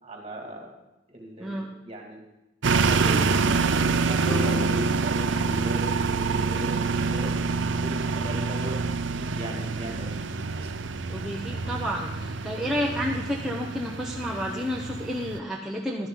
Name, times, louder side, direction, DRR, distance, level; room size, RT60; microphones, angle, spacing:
voice 1, 0.0-0.7 1.1-2.2 2.7-3.6 3.9-7.3 7.8-10.7 12.8-13.0 14.5-14.6, equal, 30° right, 1 dB, 2.5 m, -38 dB
voice 2, 1.4-1.8 11.1-16.1, equal, ahead, -3 dB, 0.9 m, -31 dB
sound 1, 2.6-15.4, right 4 dB, 75° right, 0.6 m, -26 dB
Piano, 4.3-10.6, left 3 dB, 40° left, 2.1 m, -41 dB
14.5 x 11.0 x 3.9 m, 0.98 s
head